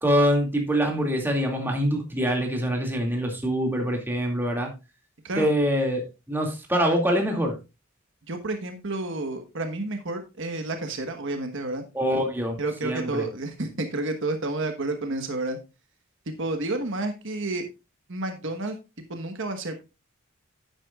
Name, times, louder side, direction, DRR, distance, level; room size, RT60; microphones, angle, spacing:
voice 1, 0.0-4.7 5.3-7.6 11.9-12.6 12.8-13.3, equal, 10° right, 1 dB, 2.3 m, -24 dB
voice 2, 8.3-11.8 12.6-15.6 16.3-17.6 18.1-18.8 19.1-19.7, right 2 dB, 60° right, 5 dB, 1.3 m, -30 dB
11.5 x 9.2 x 2.4 m, 0.27 s
head